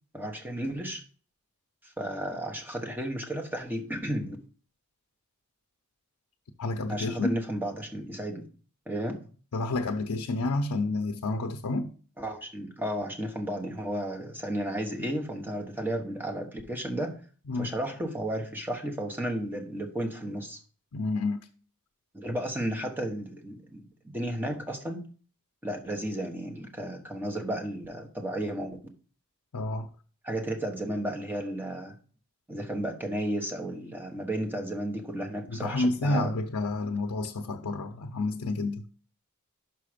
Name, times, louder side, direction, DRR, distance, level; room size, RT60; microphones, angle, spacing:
voice 1, 0.1-1.0 1.8-4.4 6.9-8.5 8.9-9.2 12.2-17.2 17.6-20.6 22.1-25.0 25.6-28.8 30.2-32.0 32.5-36.3, right 1 dB, 10° right, 1.2 m, -33 dB
voice 2, 6.6-7.4 9.5-11.9 17.5-17.7 20.9-21.4 29.5-29.9 35.5-38.8, left 2 dB, 80° left, 0.6 m, -29 dB
6.0 x 5.0 x 5.1 m
head